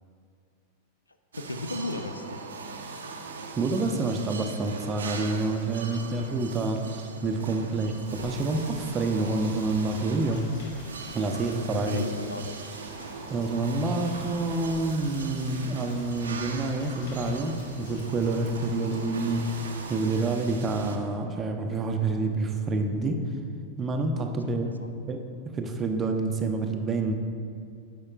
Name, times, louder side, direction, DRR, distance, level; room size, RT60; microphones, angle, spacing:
voice 1, 1.3-2.4 11.8-12.5 24.5-24.9, left 2 dB, 80° left, 8 dB, 0.4 m, -35 dB
sound 1, 1.3-21.0, right 4 dB, 70° right, 0.5 m, -40 dB
voice 2, 3.6-10.5 11.1-12.0 13.3-19.6 19.9-23.2 23.8-24.7 25.1-25.2 25.5-27.1, right 3 dB, 25° right, 5 dB, 0.6 m, -28 dB
Rain, 7.8-21.0, left 1 dB, 60° left, 1.4 m, -47 dB
9.5 x 6.6 x 2.4 m, 2.4 s
figure-of-eight pair, 90°, 0 cm